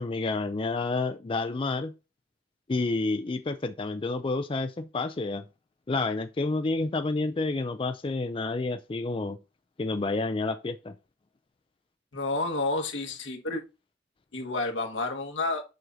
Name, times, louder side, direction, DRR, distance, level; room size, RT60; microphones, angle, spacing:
voice 1, 0.0-1.9 2.7-5.4 5.9-9.4 9.8-10.9, left 3 dB, 30° left, 0.4 m, -29 dB
voice 2, 12.1-13.6 14.3-15.6, left 2 dB, 80° left, 1.6 m, -30 dB
7.7 x 6.4 x 2.7 m
head